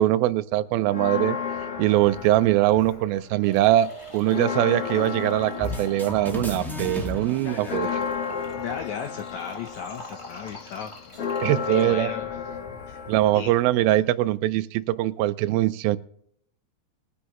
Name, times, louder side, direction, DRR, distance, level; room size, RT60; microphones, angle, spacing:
voice 1, 0.0-1.4 1.8-7.9 11.4-12.1 13.1-16.0, right 14 dB, 90° right, 2.5 m, -22 dB
Church bell, 0.9-3.3 3.6-3.7 4.1-14.1, left 6 dB, 60° left, 1.5 m, -33 dB
sound 1, 3.4-11.9, left 1 dB, 20° left, 0.8 m, -44 dB
sound 2, 5.6-8.5, left 1 dB, ahead, 1.5 m, -34 dB
voice 2, 7.4-8.2 8.6-10.9 11.7-12.5 12.9-13.0 13.3-13.5, left 7 dB, 80° left, 1.7 m, -36 dB
21.5 x 9.9 x 3.0 m
omnidirectional pair, 4.2 m